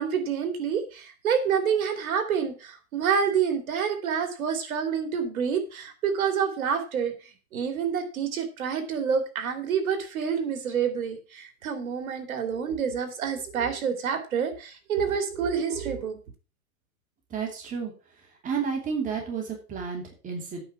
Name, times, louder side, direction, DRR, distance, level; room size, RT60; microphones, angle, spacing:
voice 1, 0.0-7.1 7.5-16.2, right 7 dB, 80° right, 7 dB, 2.9 m, -28 dB
voice 2, 17.3-17.9 18.4-20.6, right 6 dB, 20° right, 1 dB, 2.9 m, -31 dB
9.1 x 5.7 x 7.4 m, 0.35 s
supercardioid pair, 155°, 42 cm